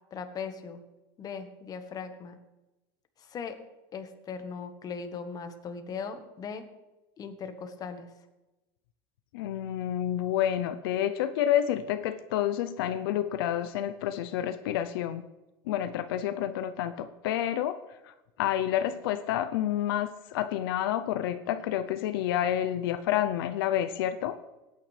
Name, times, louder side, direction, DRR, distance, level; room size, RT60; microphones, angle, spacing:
voice 1, 0.1-0.8 1.2-2.4 3.2-3.6 3.9-6.6 7.2-8.1, left 5 dB, 30° left, 7 dB, 1.4 m, -39 dB
voice 2, 9.3-15.2 15.7-18.1 18.4-24.4, left 11 dB, 80° left, 10 dB, 0.7 m, -29 dB
17.0 x 9.3 x 3.4 m, 1.0 s
supercardioid pair, 125°, 12 cm